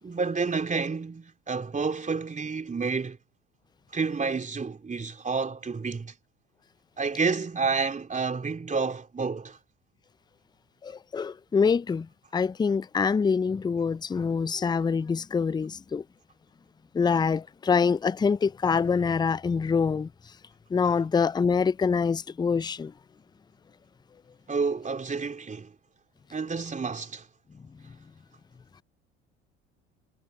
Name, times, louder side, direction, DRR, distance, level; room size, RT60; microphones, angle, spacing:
voice 1, 0.0-3.2 3.9-6.1 7.0-9.6 24.5-25.7 26.3-27.3, right 4 dB, 25° right, 3.6 m, -29 dB
voice 2, 10.8-16.0 16.9-20.1 20.7-22.9, left 5 dB, 15° left, 0.5 m, -25 dB
hypercardioid pair, 65°, 32 cm